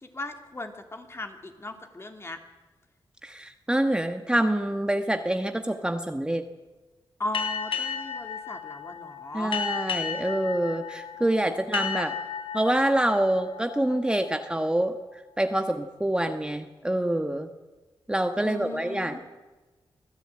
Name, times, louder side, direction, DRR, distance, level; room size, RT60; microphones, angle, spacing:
voice 1, 0.0-2.4 7.2-9.6 11.4-11.9 18.4-19.2, left 2 dB, 30° left, 5 dB, 2.7 m, -38 dB
voice 2, 3.2-6.4 9.3-12.1 12.5-15.0 15.4-17.5 18.1-19.2, right 1 dB, 10° right, 6 dB, 1.3 m, -26 dB
sound 1, 7.3-14.6, left 6 dB, 80° left, 3.5 m, -34 dB
25.0 x 15.0 x 8.8 m, 1.3 s
cardioid pair, 80°, 9 cm